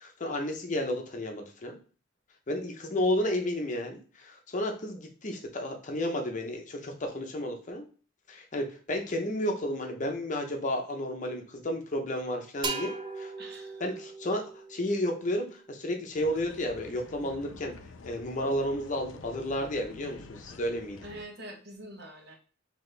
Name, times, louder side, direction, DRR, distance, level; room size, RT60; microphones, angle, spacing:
voice 1, 0.0-1.8 2.5-7.9 8.3-13.3 13.8-21.0, left 1 dB, 40° left, 3 dB, 0.7 m, -32 dB
sound 1, 12.6-16.3, right 4 dB, 25° right, 0.4 m, -39 dB
voice 2, 13.4-13.8 21.0-22.4, right 1 dB, 55° right, 2 dB, 0.9 m, -44 dB
sound 2, 16.1-21.2, left 3 dB, 80° left, 0.5 m, -49 dB
4.1 x 2.8 x 3.2 m, 0.38 s
head